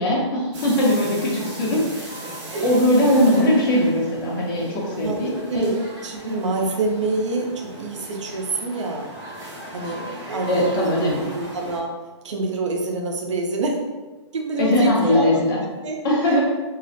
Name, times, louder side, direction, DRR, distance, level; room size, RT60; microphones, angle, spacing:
voice 1, 0.0-2.3 2.6-5.8 10.5-11.3 14.6-15.6 16.0-16.4, left 1 dB, 45° left, -4 dB, 0.9 m, -20 dB
sound 1, 0.5-11.8, right 1 dB, 30° right, 0.7 m, -37 dB
voice 2, 4.9-9.1 9.7-11.9 12.2-13.8 14.3-16.4, right 3 dB, 80° right, 1 dB, 0.5 m, -27 dB
2.3 x 2.0 x 2.6 m, 1.3 s
hypercardioid pair, 135°, 15 cm